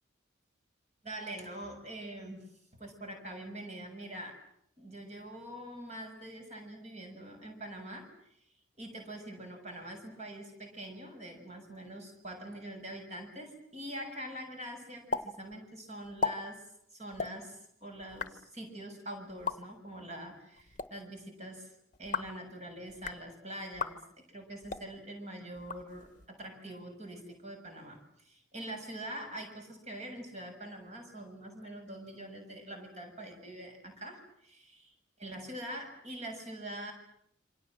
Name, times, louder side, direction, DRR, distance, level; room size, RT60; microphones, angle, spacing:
voice 1, 1.0-2.5 2.7-4.4 4.8-8.1 8.8-16.6 16.9-21.7 22.0-24.0 24.3-34.9 35.2-36.9, right 1 dB, 35° right, 4 dB, 7.0 m, -44 dB
sound 1, 15.1-15.3 15.5-15.6 16.0-16.3 17.1-17.3 18.0-18.3 19.3-19.6 20.6-20.9 21.9-22.4 22.9-23.2 23.7-23.9 24.6-24.9 25.6-26.3, left 4 dB, 40° left, 1.2 m, -36 dB
27.5 x 25.5 x 7.6 m, 0.73 s
head